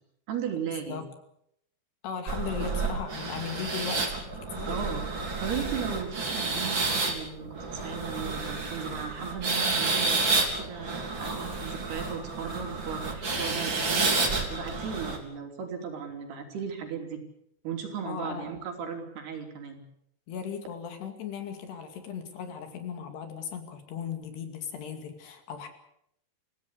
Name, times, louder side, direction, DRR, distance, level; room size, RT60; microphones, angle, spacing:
voice 1, 0.3-1.0 4.7-7.5 7.8-10.2 10.6-17.2 17.6-19.8, right 7 dB, 60° right, 3 dB, 5.2 m, -36 dB
voice 2, 2.0-4.2 4.5-4.8 18.1-18.5 20.3-25.7, left 7 dB, 65° left, 6 dB, 4.4 m, -37 dB
sound 1, 2.3-15.2, right 3 dB, 30° right, 3.7 m, -30 dB
27.0 x 16.5 x 8.3 m, 0.75 s
omnidirectional pair, 5.2 m